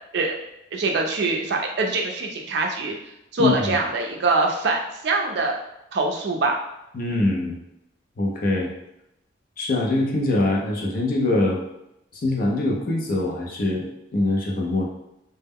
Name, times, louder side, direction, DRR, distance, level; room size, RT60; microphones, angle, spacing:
voice 1, 0.7-2.9 3.3-5.6 5.9-6.6, right 3 dB, 55° right, 1 dB, 0.4 m, -23 dB
voice 2, 3.4-3.7 6.9-7.6 8.2-8.7 9.6-11.6 12.1-14.9, left 2 dB, 45° left, -1 dB, 0.5 m, -23 dB
2.1 x 2.0 x 3.4 m, 0.85 s
head